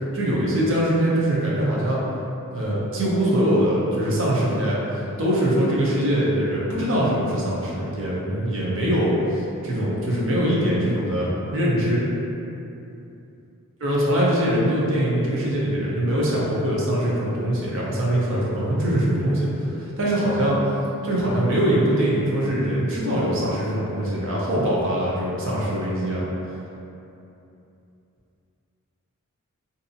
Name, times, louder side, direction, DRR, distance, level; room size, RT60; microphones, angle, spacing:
voice 1, 0.1-2.0 2.5-12.0 13.8-19.5 19.7-20.6 21.0-26.3, right 1 dB, 60° right, -6 dB, 0.6 m, -22 dB
2.6 x 2.4 x 2.6 m, 2.8 s
head